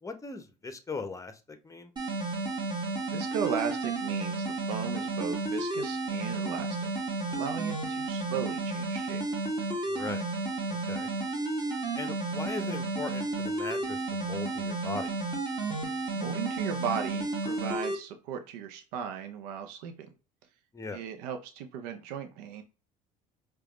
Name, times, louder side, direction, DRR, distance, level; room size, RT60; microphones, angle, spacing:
voice 1, 0.0-1.9 9.9-10.2 10.9-11.1 12.0-15.1 20.7-21.0, left 3 dB, 15° left, 9 dB, 0.8 m, -39 dB
sound 1, 2.0-18.0, right 2 dB, 20° right, 1.4 m, -32 dB
voice 2, 3.1-6.9 7.3-9.2 16.1-19.9 20.9-22.6, right 8 dB, 75° right, 6 dB, 0.6 m, -36 dB
4.8 x 2.4 x 3.0 m, 0.32 s
hypercardioid pair, 75°, 21 cm